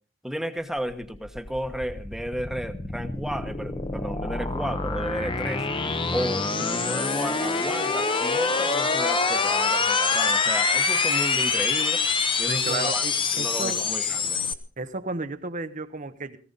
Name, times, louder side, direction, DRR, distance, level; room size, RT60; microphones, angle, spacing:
voice 1, 0.2-5.7 6.1-12.1 12.4-13.1 13.3-14.4, equal, ahead, 7 dB, 1.1 m, -33 dB
sound 1, 0.8-14.5, left 4 dB, 25° left, 0.9 m, -26 dB
voice 2, 12.5-13.8 14.8-16.4, right 3 dB, 40° right, 10 dB, 0.9 m, -32 dB
18.0 x 16.0 x 4.0 m, 0.40 s
head